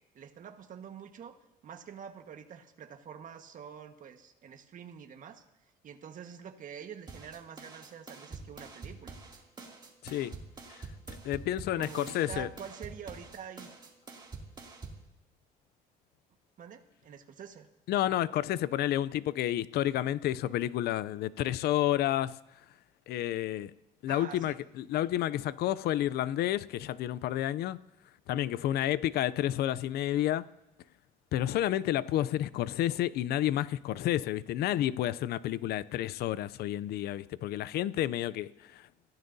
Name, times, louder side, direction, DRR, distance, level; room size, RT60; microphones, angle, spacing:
voice 1, 0.1-1.4 1.6-5.4 5.8-9.2 11.8-13.7 16.6-17.7 24.1-24.6, right 7 dB, 50° right, 1.5 m, -46 dB
sound 1, 7.1-15.1, right 3 dB, 25° right, 2.7 m, -46 dB
voice 2, 10.0-10.3 10.7-10.8 11.1-12.5 17.9-22.4 23.1-23.7 24.0-27.8 28.3-30.4 31.3-38.9, left 13 dB, 70° left, 0.5 m, -30 dB
27.0 x 16.0 x 2.7 m
cardioid pair, 110°, 17 cm